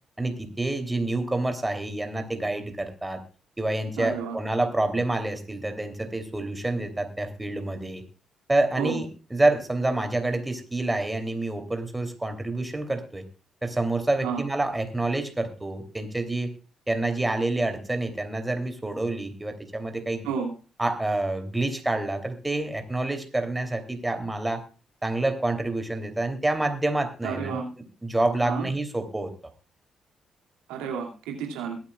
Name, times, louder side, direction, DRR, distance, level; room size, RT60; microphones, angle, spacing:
voice 1, 0.2-3.2 3.6-8.0 8.5-13.2 13.6-16.5 16.9-20.3 20.8-24.6 25.0-27.6 28.0-29.3, right 2 dB, 15° right, 7 dB, 3.0 m, -27 dB
voice 2, 4.0-4.4 8.8-9.0 14.2-14.4 20.2-20.5 27.2-27.7 28.4-28.7 30.7-31.8, right 6 dB, 80° right, 1 dB, 2.4 m, -31 dB
22.5 x 8.9 x 2.4 m, 0.34 s
hypercardioid pair, 45°, 0 cm